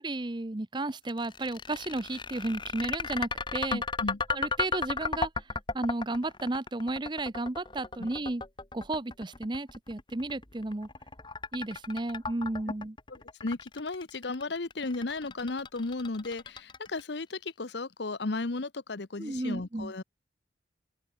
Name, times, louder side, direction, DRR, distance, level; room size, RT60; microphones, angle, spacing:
voice 1, 0.0-3.8 4.3-5.5 5.7-8.4 8.7-10.9 11.5-12.9 19.2-19.9, right 2 dB, 25° right, 0.7 m, -33 dB
sound 1, 1.1-17.2, left 4 dB, 25° left, 1.7 m, -35 dB
voice 2, 3.7-4.2 8.0-8.1 13.4-20.0, left 3 dB, 65° left, 0.9 m, -34 dB
open air
head